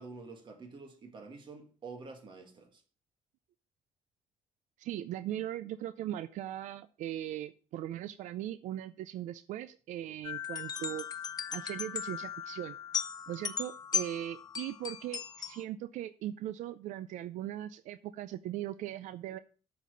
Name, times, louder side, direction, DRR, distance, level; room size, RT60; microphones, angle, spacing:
voice 1, 0.0-2.8, right 4 dB, 40° right, 2.0 m, -48 dB
voice 2, 4.8-11.1 11.5-12.8 13.3-19.4, right 12 dB, 80° right, 0.4 m, -39 dB
sound 1, 10.2-15.6, left 7 dB, 30° left, 0.6 m, -37 dB
7.4 x 6.1 x 6.6 m
cardioid pair, 150°, 12 cm